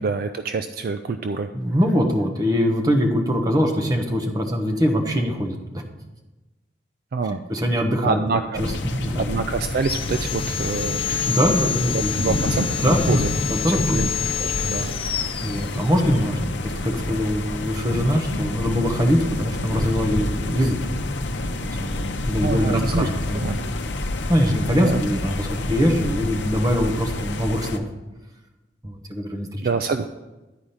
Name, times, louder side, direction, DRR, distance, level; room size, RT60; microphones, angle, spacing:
voice 1, 0.0-1.5 7.1-7.4 8.0-8.6 9.2-11.2 11.8-13.3 13.7-14.1 14.4-14.9 22.4-23.1 23.3-23.6 24.7-25.0 29.6-30.1, right 4 dB, 55° right, 9 dB, 0.4 m, -26 dB
voice 2, 1.5-5.8 7.5-8.2 8.6-9.3 11.3-12.2 12.5-13.2 13.5-14.0 15.4-20.8 21.6-23.6 24.3-27.8 28.8-29.6, equal, 20° right, 2 dB, 1.0 m, -23 dB
sound 1, 8.5-27.8, left 2 dB, 75° left, 0.7 m, -28 dB
Sawing, 9.7-16.2, left 8 dB, 30° left, 0.5 m, -28 dB
10.5 x 4.9 x 5.6 m, 1.1 s
head